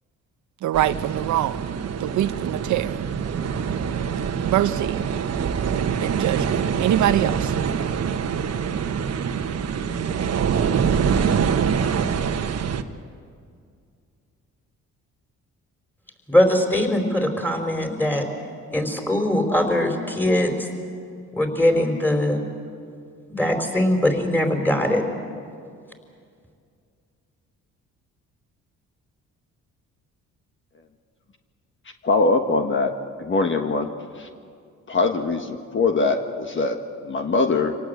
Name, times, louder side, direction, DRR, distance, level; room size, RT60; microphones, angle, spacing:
voice 1, 0.6-1.6 2.0-3.0 4.4-5.0 6.0-7.5, right 12 dB, 75° right, 12 dB, 0.7 m, -24 dB
sound 1, 0.7-12.8, right 7 dB, 55° right, 1.3 m, -25 dB
voice 2, 16.3-18.3 18.7-20.7 21.3-22.4 23.3-25.0, left 1 dB, 5° left, 3 dB, 4.7 m, -21 dB
voice 3, 32.0-32.9 33.2-33.9 34.2-34.3 34.9-37.8, left 3 dB, 40° left, 5 dB, 1.5 m, -22 dB
26.5 x 18.5 x 8.1 m, 2.2 s
cardioid pair, 90°, 30 cm